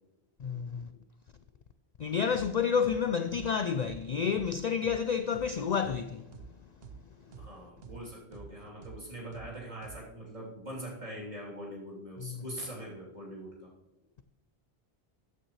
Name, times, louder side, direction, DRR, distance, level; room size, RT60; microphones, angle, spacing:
voice 1, 0.4-0.9 2.0-6.3 12.2-12.4, left 6 dB, 55° left, 0.5 m, -30 dB
sound 1, 2.3-2.5 2.8-3.0 3.3-3.5 3.8-4.0 4.3-4.5 4.8-5.0 5.3-5.5 5.8-6.0 6.3-6.5 6.8-7.0 7.3-7.5 7.8-8.0 8.3-8.5 8.8-9.0 9.3-9.5 9.8-10.0, right 5 dB, 70° right, 1.1 m, -47 dB
voice 2, 7.4-13.6, right 1 dB, 45° right, 3.5 m, -42 dB
14.0 x 9.1 x 3.2 m
omnidirectional pair, 1.1 m